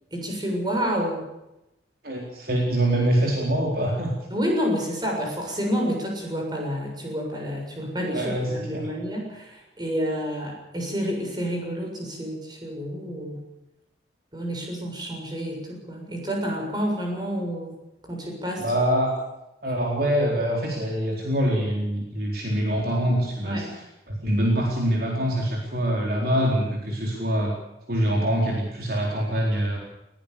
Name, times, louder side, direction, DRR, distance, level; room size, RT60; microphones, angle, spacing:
voice 1, 0.1-1.2 4.3-13.4 14.3-17.7 18.1-18.7 23.4-23.7, equal, 20° right, 0 dB, 7.1 m, -29 dB
voice 2, 2.0-4.1 8.1-8.9 18.6-19.1 19.6-23.6 24.1-27.5 27.9-29.8, right 1 dB, 55° right, -1 dB, 4.2 m, -24 dB
20.5 x 18.0 x 7.1 m, 0.91 s
head